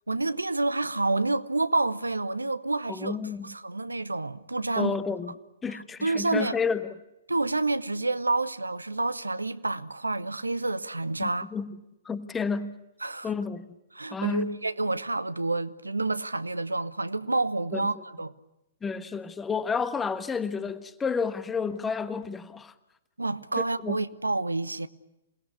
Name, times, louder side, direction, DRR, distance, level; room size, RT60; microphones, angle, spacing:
voice 1, 0.1-3.2 3.4-5.0 6.0-6.6 7.3-11.5 13.0-13.3 13.9-18.3 23.2-24.9, right 2 dB, 80° right, 1.0 m, -28 dB
voice 2, 2.9-3.5 4.8-5.3 5.6-7.0 11.2-11.8 12.0-12.8 13.2-13.8 14.1-14.6 17.7-17.9 18.8-22.7 23.8-24.0, left 5 dB, 10° left, 1.2 m, -30 dB
28.0 x 19.0 x 8.3 m
figure-of-eight pair, 115°, 0 cm